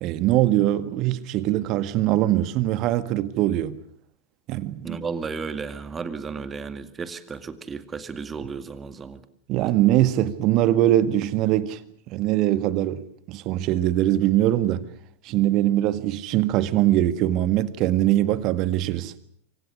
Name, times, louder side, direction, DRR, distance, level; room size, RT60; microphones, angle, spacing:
voice 1, 0.0-3.8 4.5-5.0 9.5-11.8 12.1-13.0 13.3-14.8 15.2-19.1, right 13 dB, 40° right, 1.7 m, -22 dB
voice 2, 4.8-9.2, right 5 dB, 20° right, 2.2 m, -33 dB
27.5 x 25.0 x 6.4 m
figure-of-eight pair, 90°, 0 cm